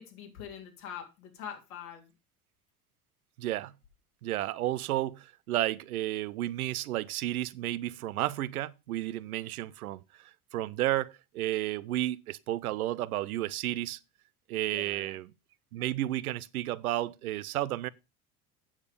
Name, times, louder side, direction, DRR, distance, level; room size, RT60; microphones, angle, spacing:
voice 1, 0.0-2.1 14.7-15.2, left 8 dB, 70° left, 3.3 m, -44 dB
voice 2, 3.4-3.7 4.2-14.0 14.5-15.3 15.7-17.9, right 14 dB, 85° right, 0.6 m, -32 dB
8.9 x 6.6 x 5.1 m
hypercardioid pair, 75°, 42 cm